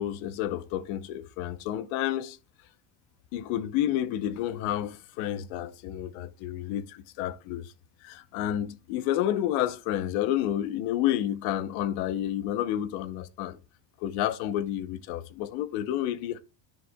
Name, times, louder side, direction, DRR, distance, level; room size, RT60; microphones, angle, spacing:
voice 1, 0.0-2.4 3.3-7.7 8.0-13.6 14.0-16.4, left 12 dB, 65° left, 0.8 m, -30 dB
10.0 x 6.3 x 2.2 m
cardioid pair, 170°, 50 cm